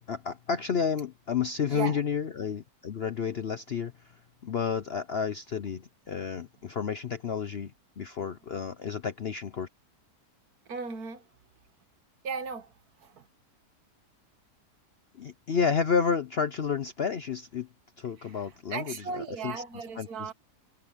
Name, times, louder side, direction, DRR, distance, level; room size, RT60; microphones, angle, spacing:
voice 1, 0.1-3.9 4.4-9.7 15.2-17.7 18.0-19.5 20.0-20.1, left 6 dB, 55° left, 0.7 m, -31 dB
voice 2, 10.7-11.3 12.2-12.7 13.0-13.3 18.2-20.3, right 5 dB, 65° right, 1.9 m, -37 dB
omnidirectional pair, 1.8 m